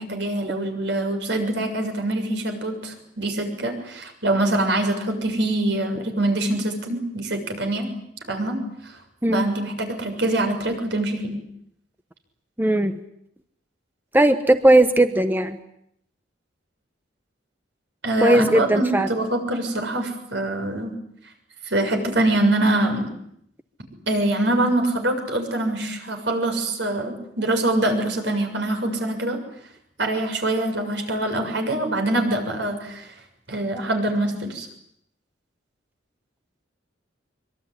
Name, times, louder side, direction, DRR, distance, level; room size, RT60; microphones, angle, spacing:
voice 1, 0.0-7.9 8.3-9.0 9.3-11.4 18.0-21.0 21.6-23.1 24.1-29.4 30.0-33.1 33.5-34.7, right 1 dB, 65° right, 5 dB, 6.8 m, -24 dB
voice 2, 12.6-13.0 14.1-15.6 18.2-19.1, right 1 dB, 10° right, 9 dB, 1.1 m, -18 dB
24.5 x 24.5 x 9.9 m, 0.74 s
head